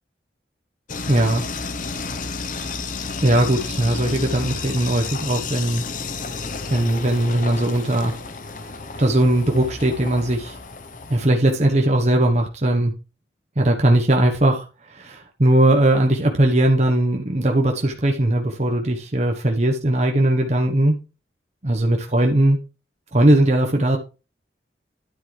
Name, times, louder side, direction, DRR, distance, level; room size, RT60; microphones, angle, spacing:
sound 1, 0.9-11.3, left 4 dB, 45° left, 0.8 m, -31 dB
voice 1, 1.1-1.4 2.5-2.6 3.2-5.8 6.7-8.1 9.0-10.6 11.1-12.9 13.6-14.6 14.9-21.0 21.6-22.6 23.1-24.0, right 1 dB, 40° right, 1.1 m, -19 dB
10.0 x 8.2 x 3.3 m
head